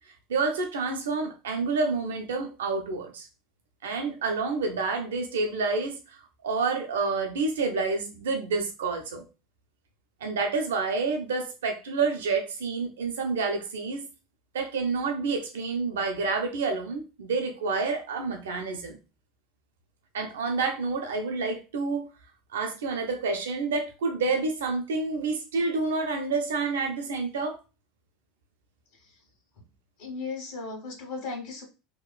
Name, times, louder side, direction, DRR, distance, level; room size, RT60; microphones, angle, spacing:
voice 1, 0.3-3.3 3.8-6.0 6.4-9.2 10.2-14.1 14.5-19.0 20.1-22.1 22.5-27.6, right 4 dB, 80° right, 0.6 m, -28 dB
voice 2, 30.0-31.6, left 4 dB, 70° left, 1.1 m, -36 dB
2.9 x 2.3 x 2.2 m
hypercardioid pair, 80°, 0 cm